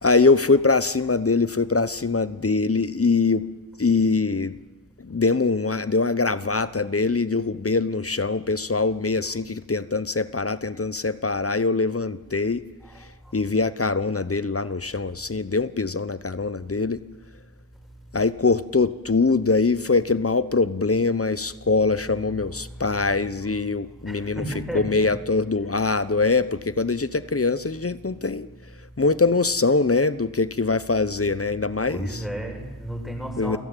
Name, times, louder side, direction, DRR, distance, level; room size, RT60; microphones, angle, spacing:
voice 1, 0.0-3.5 3.8-4.6 5.0-12.6 13.3-17.0 18.1-24.4 24.7-28.5 29.0-32.2 33.4-33.6, left 3 dB, 40° left, 15 dB, 1.0 m, -23 dB
voice 2, 24.0-25.0 31.9-33.6, right 1 dB, ahead, 2 dB, 6.8 m, -33 dB
29.0 x 17.0 x 9.1 m, 1.2 s
wide cardioid pair, 55°, 37 cm